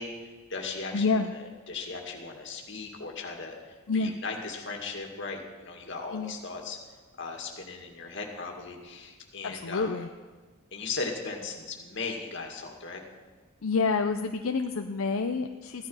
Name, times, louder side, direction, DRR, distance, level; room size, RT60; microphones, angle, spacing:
voice 1, 0.0-6.8 7.2-10.1 10.7-13.0, left 4 dB, 55° left, 1 dB, 2.1 m, -38 dB
voice 2, 0.9-1.3 3.9-4.1 6.1-6.4 9.4-10.1 13.6-15.9, left 4 dB, 80° left, 6 dB, 0.6 m, -28 dB
15.5 x 11.5 x 5.6 m, 1.3 s
head